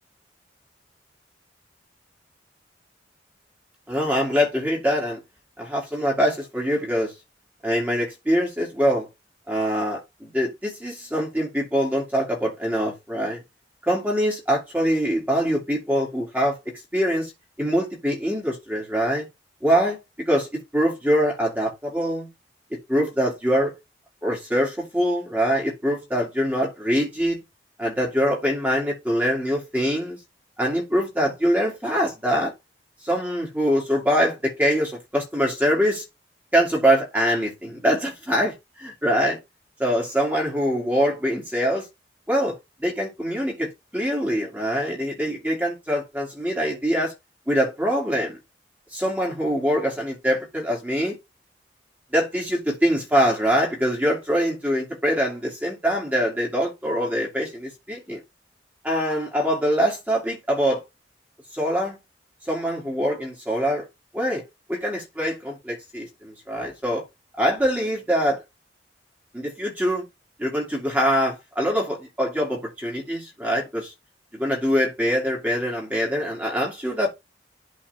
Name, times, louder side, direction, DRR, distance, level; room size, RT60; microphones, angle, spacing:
voice 1, 3.9-5.2 5.6-7.1 7.6-9.1 9.5-13.4 13.9-16.6 16.9-17.3 17.6-19.3 19.6-22.3 22.7-23.8 24.2-27.4 27.8-30.2 30.6-32.5 33.0-36.0 36.5-39.4 39.8-41.9 42.3-47.1 47.5-48.4 48.9-51.1 52.1-58.2 58.8-60.8 61.5-62.0 62.5-63.9 64.1-64.4 64.7-67.0 67.4-68.4 69.3-70.0 70.4-73.9 74.3-77.1, equal, 10° right, 2.5 m, -24 dB
11.5 x 4.1 x 3.5 m
head